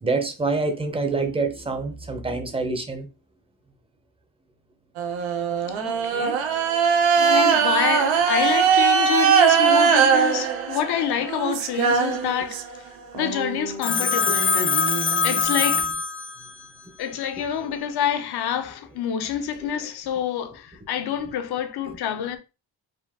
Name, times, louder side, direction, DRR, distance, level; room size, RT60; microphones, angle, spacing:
voice 1, 0.0-3.1, right 3 dB, 15° right, 0.7 m, -26 dB
sound 1, 5.0-12.8 13.1-15.8, right 6 dB, 80° right, 0.9 m, -21 dB
voice 2, 5.6-6.6 7.2-12.7 13.1-15.0 15.2-15.9 17.0-22.4, left 9 dB, 60° left, 0.8 m, -27 dB
Telephone, 13.8-16.6, left 5 dB, 30° left, 0.4 m, -23 dB
5.0 x 2.3 x 3.5 m
cardioid pair, 165°, 45 cm